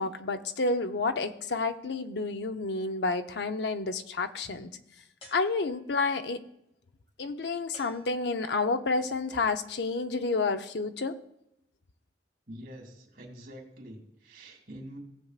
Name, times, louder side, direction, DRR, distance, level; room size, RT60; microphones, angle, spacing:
voice 1, 0.0-4.7 5.3-6.4 7.2-11.1, left 3 dB, 70° left, 8 dB, 0.7 m, -30 dB
sound 1, 5.2-6.1 7.7-8.7, left 1 dB, 35° left, 2.5 m, -54 dB
voice 2, 12.5-15.0, equal, 65° right, 0 dB, 2.7 m, -46 dB
17.5 x 7.8 x 2.4 m, 0.81 s
head